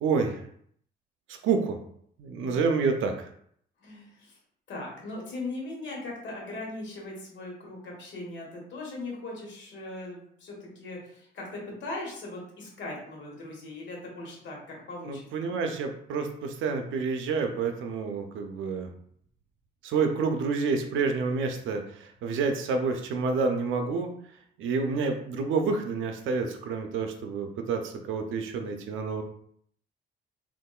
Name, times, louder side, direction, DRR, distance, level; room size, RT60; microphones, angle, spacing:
voice 1, 0.0-0.4 1.3-1.8 2.2-3.3 15.0-18.9 19.8-24.1 24.6-29.2, right 4 dB, 80° right, 5 dB, 0.5 m, -28 dB
voice 2, 3.8-4.4 4.7-15.5, left 2 dB, 65° left, -2 dB, 1.3 m, -39 dB
3.6 x 2.5 x 2.3 m, 0.66 s
cardioid pair, 90°, 20 cm